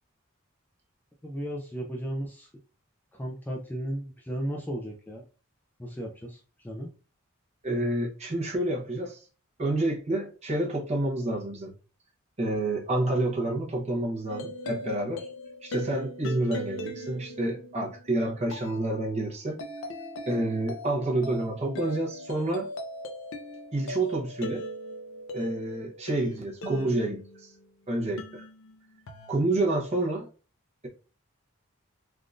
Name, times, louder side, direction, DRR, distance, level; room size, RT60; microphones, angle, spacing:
voice 1, 1.2-2.5 3.1-5.2 5.8-6.9, equal, 10° left, 0.3 m, -35 dB
voice 2, 7.6-9.2 9.6-11.7 12.4-15.2 15.6-19.6 20.3-22.7 23.7-24.6 25.3-27.5 27.9-28.4 29.3-30.3, right 2 dB, 30° right, 0.8 m, -29 dB
sound 1, 14.3-27.7 28.2-29.3, equal, 70° left, 0.5 m, -40 dB
3.5 x 2.5 x 2.4 m
head